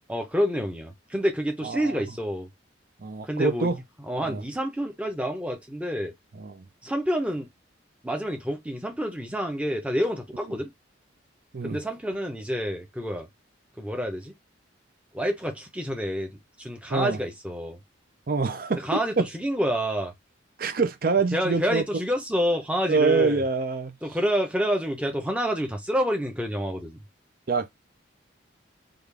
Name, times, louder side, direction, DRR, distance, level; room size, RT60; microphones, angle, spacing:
voice 1, 0.1-2.5 3.2-3.7 4.0-6.1 6.8-7.5 8.0-10.7 11.6-13.3 13.8-14.3 15.1-16.3 16.6-17.8 18.8-20.1 21.3-23.4 24.0-27.0, equal, 5° right, 0.7 m, -28 dB
voice 2, 1.6-2.0 3.0-3.8 4.2-4.4 6.4-6.6 11.5-11.8 16.9-17.2 18.3-18.9 19.2-19.3 20.6-21.8 22.9-23.9 27.5-27.7, right 4 dB, 50° right, 0.5 m, -25 dB
3.7 x 2.4 x 3.3 m
head